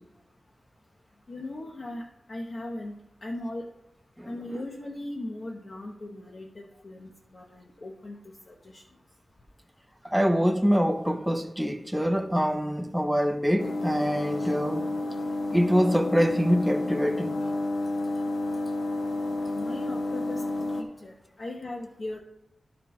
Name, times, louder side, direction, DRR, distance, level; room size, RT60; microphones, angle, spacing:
voice 1, 1.3-2.9 3.2-3.6 4.3-8.8 19.3-20.4 20.8-22.2, left 1 dB, 45° left, 0.8 m, -38 dB
voice 2, 10.0-14.8 15.5-17.4, equal, 5° right, 0.5 m, -25 dB
sound 1, 13.6-20.8, left 2 dB, 90° left, 0.8 m, -30 dB
12.0 x 4.3 x 4.2 m
wide cardioid pair, 110°, 0 cm